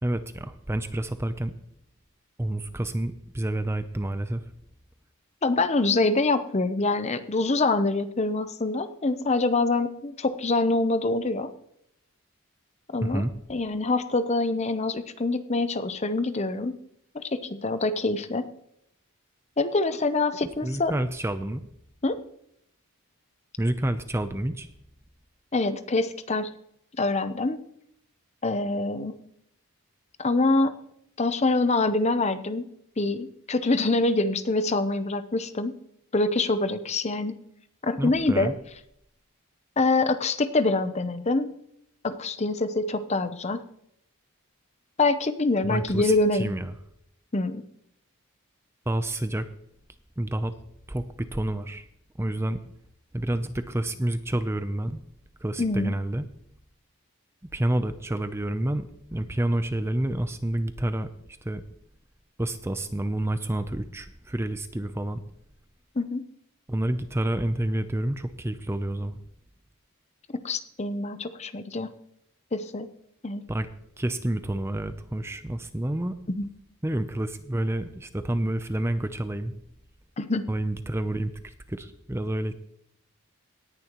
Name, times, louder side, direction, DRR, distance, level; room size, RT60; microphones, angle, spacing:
voice 1, 0.0-1.5 2.4-4.4 13.0-13.3 20.6-21.6 23.6-24.7 38.0-38.5 45.6-46.7 48.9-49.5 50.2-50.5 50.9-51.9 52.2-52.6 53.1-55.0 55.4-56.2 57.5-61.6 62.4-65.2 66.7-69.2 73.5-73.7 74.0-76.2 76.8-79.5 80.5-82.5, right 1 dB, 10° right, 10 dB, 0.5 m, -29 dB
voice 2, 5.4-11.5 12.9-13.2 13.5-16.8 17.1-18.5 19.6-20.9 22.0-22.2 25.5-26.5 27.0-27.6 28.4-29.1 30.2-30.7 31.2-32.7 33.0-35.8 36.1-37.4 37.8-38.5 39.8-41.5 42.0-43.6 45.0-46.5 47.3-47.6 55.6-55.9 66.0-66.2 70.4-71.9 72.5-72.9 73.2-73.4 76.3-76.5 80.2-80.4, left 2 dB, 30° left, 11 dB, 0.7 m, -25 dB
18.0 x 10.5 x 3.0 m, 0.73 s
head